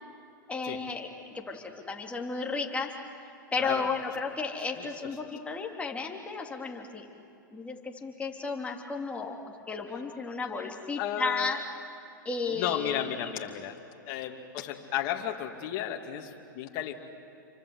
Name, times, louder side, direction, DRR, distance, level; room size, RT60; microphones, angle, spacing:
voice 1, 0.5-2.9 3.5-7.1 7.5-11.6 12.2-13.3, left 4 dB, 10° left, 0 dB, 3.2 m, -34 dB
voice 2, 4.8-5.1 11.0-11.6 12.5-13.8 14.1-16.9, left 11 dB, 45° left, 2 dB, 2.8 m, -34 dB
29.5 x 24.5 x 8.2 m, 2.8 s
hypercardioid pair, 115°, 11 cm